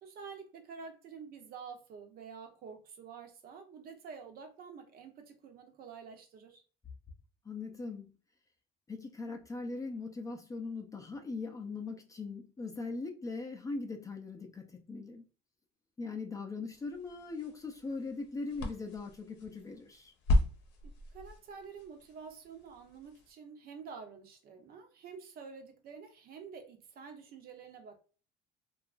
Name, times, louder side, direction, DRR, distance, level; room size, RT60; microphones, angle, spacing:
voice 1, 0.0-6.6 20.8-28.0, right 6 dB, 55° right, 0.7 m, -49 dB
voice 2, 7.4-8.2 8.9-15.2 16.0-20.1, left 3 dB, 20° left, 0.4 m, -40 dB
sound 1, 16.7-23.3, left 1 dB, 70° left, 0.7 m, -36 dB
2.8 x 2.3 x 2.4 m
cardioid pair, 125°, 19 cm